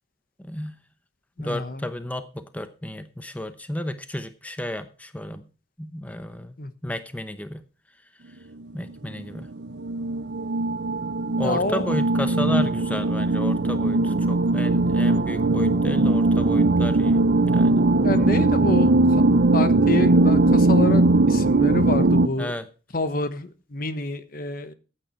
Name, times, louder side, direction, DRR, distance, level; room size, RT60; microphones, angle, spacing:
voice 1, 0.4-0.8 1.4-5.4 5.8-6.6 6.8-7.6 8.7-9.5 11.4-17.2 17.5-17.8 22.4-22.6, left 1 dB, 10° left, 10 dB, 0.8 m, -32 dB
voice 2, 1.4-1.9 6.6-6.9 11.4-11.9 18.0-18.9 19.5-22.5 22.9-24.7, left 2 dB, 55° left, 11 dB, 1.2 m, -28 dB
sound 1, 8.9-9.0 9.2-22.3, right 2 dB, 75° right, 0.7 m, -20 dB
14.5 x 8.9 x 4.5 m, 0.35 s
head